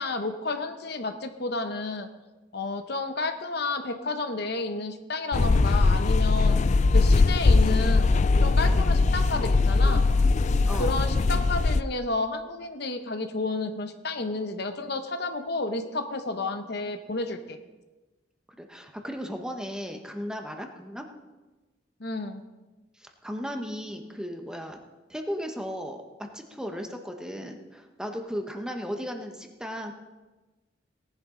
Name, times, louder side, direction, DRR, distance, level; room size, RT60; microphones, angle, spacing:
voice 1, 0.0-2.1 2.5-6.6 6.9-8.1 8.4-10.1 10.8-17.6 22.0-22.4, left 3 dB, 60° left, 7 dB, 0.9 m, -31 dB
sound 1, 5.3-11.8, left 3 dB, 40° left, 0.4 m, -21 dB
voice 2, 18.6-21.1 23.0-24.8 25.1-29.9, equal, 5° right, 4 dB, 1.1 m, -36 dB
18.0 x 11.0 x 3.9 m, 1.2 s
head